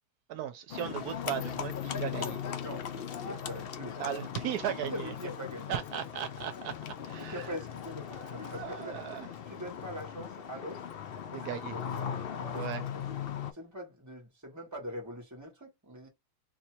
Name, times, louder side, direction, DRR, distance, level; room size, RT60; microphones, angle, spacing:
voice 1, 0.3-2.4 4.0-5.1 5.7-6.7 7.0-7.4 8.1-9.3 11.5-11.7 12.5-12.8, right 10 dB, 80° right, 1.1 m, -37 dB
Livestock farm animals working animals, 0.7-13.5, left 8 dB, 75° left, 0.5 m, -39 dB
voice 2, 2.6-4.1 4.4-5.8 7.1-9.0 9.5-10.9 11.2-12.7 12.9-16.1, equal, 10° right, 1.3 m, -43 dB
2.8 x 2.7 x 4.3 m
omnidirectional pair, 1.7 m